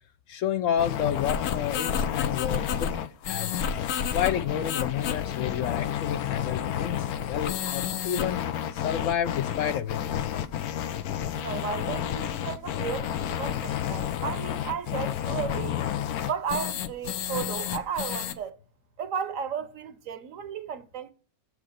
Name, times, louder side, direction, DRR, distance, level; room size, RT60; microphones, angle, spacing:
voice 1, 0.3-3.6 4.1-8.4 8.7-10.2, left 9 dB, 70° left, 0.8 m, -30 dB
sound 1, 0.8-18.3, left 9 dB, 85° left, 1.2 m, -30 dB
voice 2, 11.4-15.8 16.2-18.6 19.0-21.1, right 7 dB, 65° right, 1.1 m, -34 dB
7.4 x 4.9 x 6.4 m
omnidirectional pair, 1.6 m